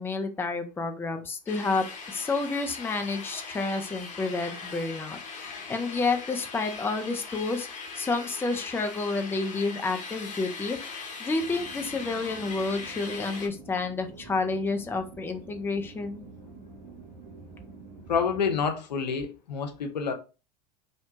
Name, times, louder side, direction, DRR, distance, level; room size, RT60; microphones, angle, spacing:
voice 1, 0.0-7.7 8.0-16.3, left 3 dB, 10° left, 0.4 m, -30 dB
sound 1, 1.5-13.5, left 4 dB, 35° left, 0.9 m, -40 dB
sound 2, 11.4-18.7, right 4 dB, 80° right, 0.6 m, -47 dB
voice 2, 18.1-20.1, left 6 dB, 85° left, 0.5 m, -28 dB
2.7 x 2.1 x 2.8 m
hypercardioid pair, 80°, 21 cm